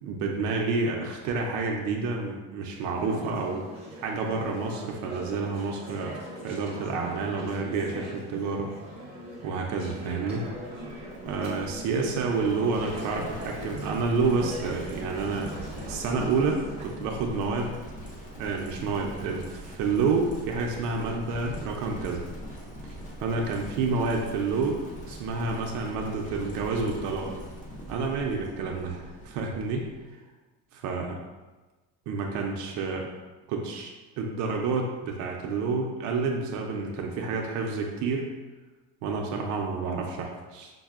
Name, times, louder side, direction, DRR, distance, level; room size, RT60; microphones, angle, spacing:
voice 1, 0.0-3.7 4.0-6.2 6.4-8.7 9.4-10.5 11.2-15.5 15.9-17.8 18.4-22.3 22.8-27.3 27.9-29.9 30.7-31.2 32.1-33.1 33.5-33.9 34.2-38.3 39.0-40.7, right 4 dB, 65° right, 0 dB, 0.5 m, -29 dB
Conversation / Chatter, 3.0-17.0, right 1 dB, 20° right, 0.6 m, -40 dB
Livestock farm animals working animals, 10.4-30.1, equal, 25° left, 0.4 m, -42 dB
5.2 x 2.0 x 2.3 m, 1.2 s
cardioid pair, 165°, 32 cm